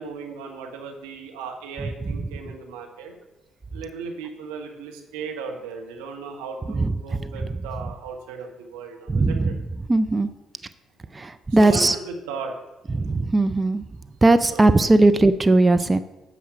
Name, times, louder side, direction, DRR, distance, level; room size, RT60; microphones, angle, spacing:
voice 1, 0.0-3.2 3.7-9.5 11.6-12.6 14.5-14.6, right 4 dB, 70° right, 2 dB, 1.2 m, -36 dB
voice 2, 9.1-9.6 9.9-10.3 11.1-12.0 12.9-13.8 14.2-16.0, right 2 dB, 20° right, 11 dB, 0.5 m, -18 dB
9.4 x 6.1 x 5.7 m, 1.0 s
figure-of-eight pair, 45°, 0 cm